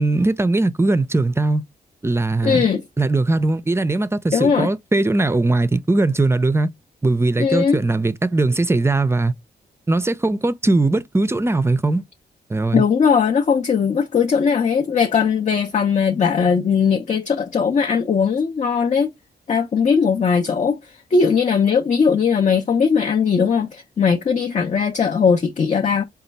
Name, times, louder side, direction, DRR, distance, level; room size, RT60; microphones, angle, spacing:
voice 1, 0.0-1.6 2.0-2.7 3.0-6.7 7.0-9.3 9.9-12.0 12.5-12.8, right 2 dB, 15° right, 0.4 m, -19 dB
voice 2, 2.4-2.8 4.3-4.7 7.4-7.8 12.7-19.1 19.5-26.0, left 6 dB, 45° left, 0.6 m, -19 dB
4.2 x 2.3 x 3.9 m
cardioid pair, 100°, 17 cm